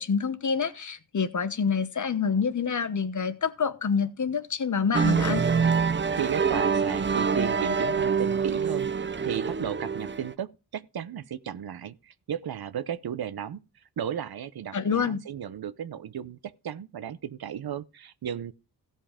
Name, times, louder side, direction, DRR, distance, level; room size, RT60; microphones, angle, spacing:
voice 1, 0.0-5.4 14.7-15.2, left 6 dB, 45° left, 1.1 m, -27 dB
sound 1, 4.9-10.3, right 5 dB, 30° right, 0.7 m, -25 dB
voice 2, 5.9-13.6 14.0-18.5, right 9 dB, 65° right, 0.8 m, -35 dB
16.0 x 5.5 x 5.0 m
wide cardioid pair, 90°, 41 cm